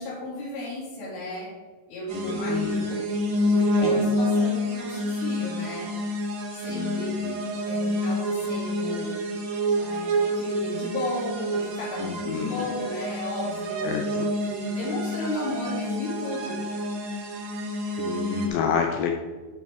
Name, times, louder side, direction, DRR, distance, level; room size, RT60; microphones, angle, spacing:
voice 1, 0.0-1.5 1.9-3.0 3.4-5.9 6.5-7.3 7.5-9.2 9.8-13.9 14.3-16.6, left 2 dB, 70° left, -9 dB, 4.2 m, -34 dB
voice 2, 2.1-2.8 3.8-4.1 6.7-7.4 12.0-12.7 13.8-14.3 18.0-19.1, left 7 dB, 90° left, 3 dB, 2.0 m, -30 dB
sound 1, 2.1-18.5, equal, 75° right, 1.6 m, -28 dB
10.5 x 4.2 x 3.4 m, 1.4 s
omnidirectional pair, 4.7 m